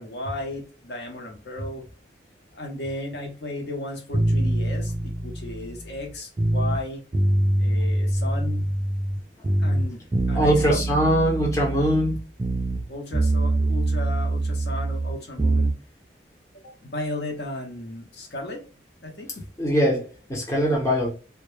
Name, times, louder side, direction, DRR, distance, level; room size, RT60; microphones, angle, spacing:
voice 1, 0.0-1.8 2.5-7.0 7.6-8.7 9.6-10.0 10.3-11.0 12.9-15.7 16.6-18.6 19.0-19.4, left 1 dB, 60° left, 0.7 m, -34 dB
sound 1, 4.1-6.8 7.1-9.2 9.4-12.9 13.1-15.8, right 1 dB, 20° right, 0.3 m, -24 dB
voice 2, 10.3-12.2 19.6-21.1, equal, 15° left, 0.6 m, -22 dB
2.1 x 2.0 x 2.9 m
head